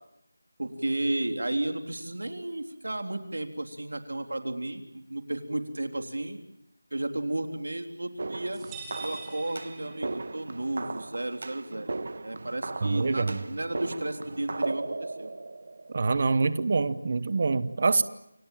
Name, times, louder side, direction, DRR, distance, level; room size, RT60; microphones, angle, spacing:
voice 1, 0.6-6.4 6.9-8.6 9.0-12.0 12.2-15.3, right 1 dB, 85° right, 5 dB, 3.6 m, -33 dB
sound 1, 8.2-16.3, right 3 dB, 50° right, 1.5 m, -37 dB
sound 2, 8.5-10.5, right 4 dB, 10° right, 2.9 m, -44 dB
voice 2, 12.8-13.4 15.9-18.0, right 4 dB, 35° right, 15 dB, 1.0 m, -25 dB
29.0 x 24.5 x 7.5 m, 0.82 s
figure-of-eight pair, 175°, 0 cm